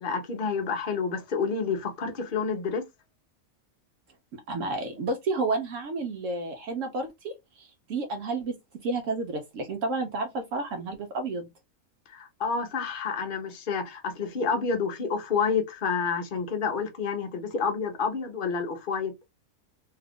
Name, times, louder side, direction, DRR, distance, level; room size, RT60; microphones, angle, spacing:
voice 1, 0.0-2.9 12.1-19.1, left 5 dB, 50° left, 0.7 m, -29 dB
voice 2, 4.5-8.5 8.8-11.5, right 3 dB, 70° right, 1.0 m, -31 dB
2.8 x 2.4 x 3.5 m
omnidirectional pair, 1.4 m